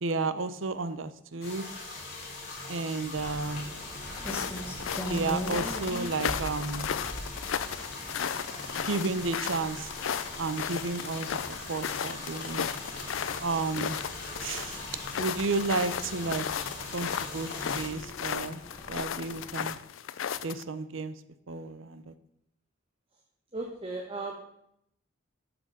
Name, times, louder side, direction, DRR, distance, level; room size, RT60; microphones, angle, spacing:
voice 1, 0.0-1.7 2.7-3.6 5.1-6.9 8.9-9.9 10.4-11.4 11.7-12.7 13.4-14.0 14.4-14.8 15.2-16.5 16.9-17.5 17.7-18.6 18.9-19.8 20.4-21.1 21.5-22.1, right 3 dB, 80° right, 13 dB, 0.7 m, -32 dB
sound 1, 1.4-17.9, left 2 dB, 55° left, 3.7 m, -41 dB
Rain, 3.1-19.7, equal, 10° left, 1.7 m, -43 dB
sound 2, 4.1-20.6, left 8 dB, 85° left, 0.5 m, -35 dB
voice 2, 23.5-24.3, right 2 dB, 30° right, 0 dB, 1.2 m, -35 dB
12.5 x 6.2 x 5.3 m, 0.76 s
head